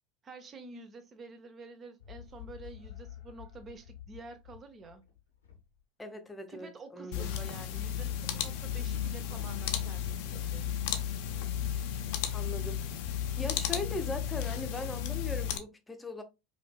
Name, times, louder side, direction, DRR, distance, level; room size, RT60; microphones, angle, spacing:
voice 1, 0.2-5.1 6.5-10.8, right 3 dB, 35° right, 0.9 m, -49 dB
sound 1, 2.0-5.8, left 11 dB, 90° left, 1.0 m, -50 dB
voice 2, 6.0-7.3 12.3-12.8 13.1-16.2, left 2 dB, 15° left, 0.8 m, -39 dB
sound 2, 7.1-15.6, left 9 dB, 65° left, 0.6 m, -34 dB
4.9 x 2.6 x 2.2 m
hypercardioid pair, 80°, 0 cm